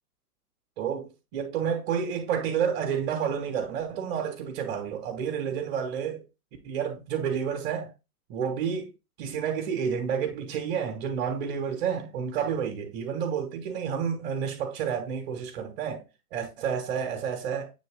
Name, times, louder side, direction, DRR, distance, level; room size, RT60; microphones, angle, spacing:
voice 1, 0.8-1.1 1.3-6.2 6.6-7.9 8.3-8.9 9.2-16.0 16.3-17.7, right 7 dB, 35° right, 2.4 m, -30 dB
9.1 x 3.5 x 3.9 m
hypercardioid pair, 130°, 46 cm